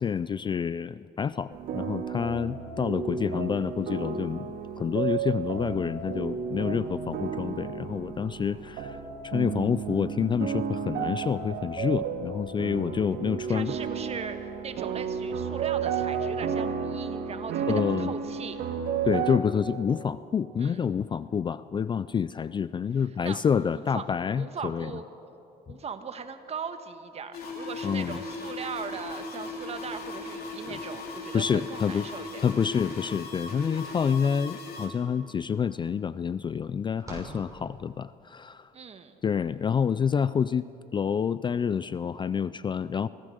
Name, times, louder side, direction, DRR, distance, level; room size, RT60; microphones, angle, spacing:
voice 1, 0.0-9.0 9.2-13.7 17.7-18.1 19.1-24.9 25.7-25.8 27.8-28.2 30.7-30.8 31.3-32.1 32.4-38.7 39.2-43.1, left 7 dB, 30° left, 16 dB, 0.4 m, -28 dB
sound 1, 1.5-19.4, right 7 dB, 70° right, 1.9 m, -32 dB
voice 2, 13.5-18.6 20.6-20.9 23.2-24.0 24.3-25.1 25.7-32.8 38.7-39.2, right 6 dB, 40° right, 8 dB, 1.4 m, -39 dB
sound 2, 27.3-34.9, left 3 dB, 65° left, 3.4 m, -38 dB
fridge freezer door open close slight rattle, 35.2-38.3, right 1 dB, 20° right, 6.5 m, -47 dB
24.5 x 16.5 x 6.5 m, 2.9 s
cardioid pair, 110°, 17 cm